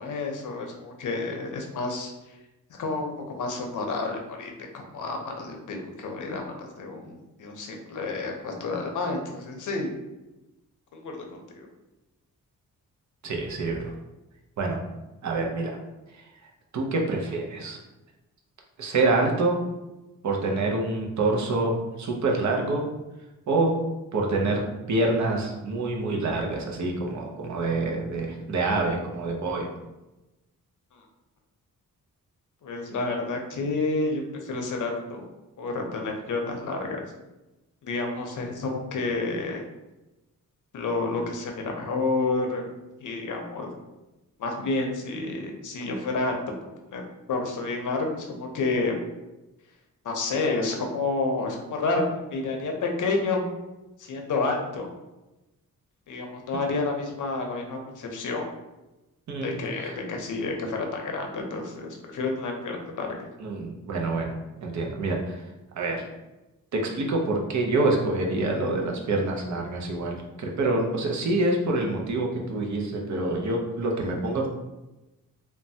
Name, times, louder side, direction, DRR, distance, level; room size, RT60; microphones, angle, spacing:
voice 1, 0.0-2.3 2.7-9.9 10.9-11.7 30.9-31.0 32.6-35.3 35.6-37.0 37.8-39.6 40.7-42.6 43.0-43.7 44.4-48.9 50.0-52.0 52.3-53.4 54.0-54.9 56.1-58.5 59.4-63.3, left 3 dB, 60° left, 2 dB, 0.6 m, -30 dB
voice 2, 13.2-13.9 14.6-14.8 15.2-15.8 16.1-16.3 16.7-17.8 18.8-19.6 20.2-22.8 23.5-23.8 24.1-24.6 24.9-29.7 59.3-60.0 63.4-65.5 65.7-66.0 66.7-74.5, right 2 dB, 55° right, 0 dB, 0.6 m, -26 dB
3.1 x 2.1 x 2.7 m, 1.0 s
wide cardioid pair, 125°, 34 cm